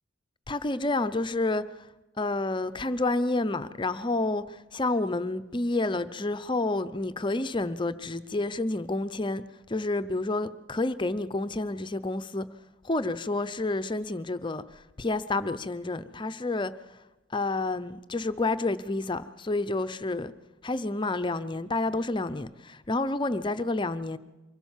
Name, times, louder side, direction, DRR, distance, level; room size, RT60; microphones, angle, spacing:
voice 1, 0.5-1.9 2.2-12.5 12.8-16.7 17.3-20.3 20.6-24.2, left 2 dB, 25° left, 0.6 m, -29 dB
24.0 x 16.0 x 7.3 m
head